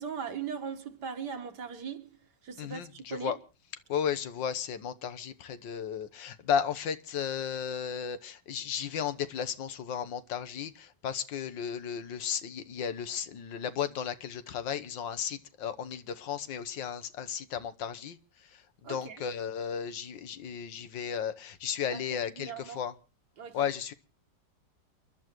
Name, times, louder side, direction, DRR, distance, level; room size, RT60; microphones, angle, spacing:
voice 1, 0.0-2.2 2.4-3.3 18.8-19.2 21.9-22.8 23.4-23.7, right 6 dB, 65° right, 2.1 m, -39 dB
voice 2, 2.6-3.4 3.9-18.2 18.9-22.9 23.5-23.9, left 8 dB, 90° left, 1.8 m, -34 dB
28.5 x 11.5 x 3.0 m
omnidirectional pair, 1.9 m